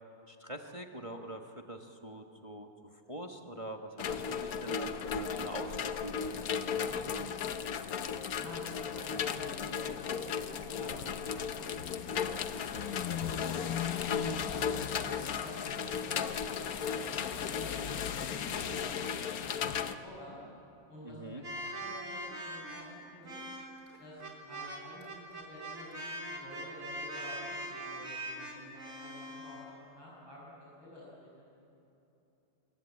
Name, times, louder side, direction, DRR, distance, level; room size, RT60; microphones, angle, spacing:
voice 1, 0.3-7.3 21.0-21.4, right 1 dB, 20° right, 3 dB, 1.2 m, -44 dB
sound 1, 4.0-20.0, left 7 dB, 55° left, 1.2 m, -35 dB
voice 2, 8.3-13.8 14.4-18.1 18.4-20.4 20.9-23.4 24.0-31.8, left 1 dB, 85° left, -5 dB, 6.6 m, -50 dB
sound 2, 21.4-29.7, right 1 dB, 40° right, 4.2 m, -41 dB
27.0 x 22.0 x 8.6 m, 2.9 s
omnidirectional pair, 2.1 m